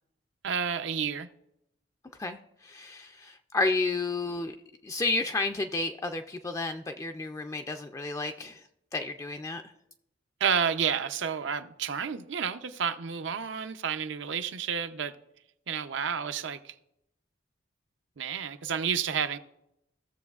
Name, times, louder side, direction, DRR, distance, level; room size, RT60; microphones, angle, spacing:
voice 1, 0.4-1.3 10.4-15.1 15.7-16.7 18.2-19.4, right 7 dB, 70° right, 0.6 m, -30 dB
voice 2, 2.2-4.6 4.8-8.7 8.9-9.6, left 3 dB, 15° left, 0.3 m, -31 dB
15.5 x 7.0 x 2.4 m
head